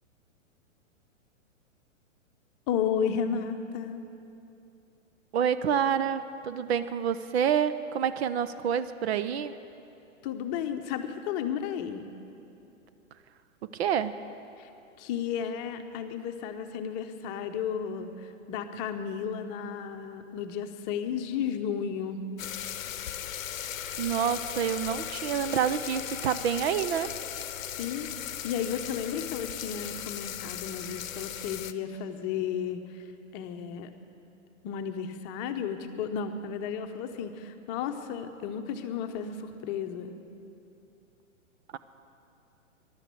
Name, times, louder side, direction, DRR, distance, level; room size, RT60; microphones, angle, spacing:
voice 1, 2.7-4.0 10.2-12.1 14.6-14.7 15.0-22.2 27.8-28.1 28.4-33.1 33.3-33.9 34.6-40.2, left 7 dB, 30° left, 7 dB, 0.9 m, -33 dB
voice 2, 5.3-9.6 13.7-14.1 24.0-27.1, right 8 dB, 50° right, 13 dB, 0.6 m, -28 dB
sound 1, 22.4-31.7, left 10 dB, 75° left, 0.8 m, -37 dB
13.0 x 11.5 x 8.3 m, 2.8 s
hypercardioid pair, 125°, 40 cm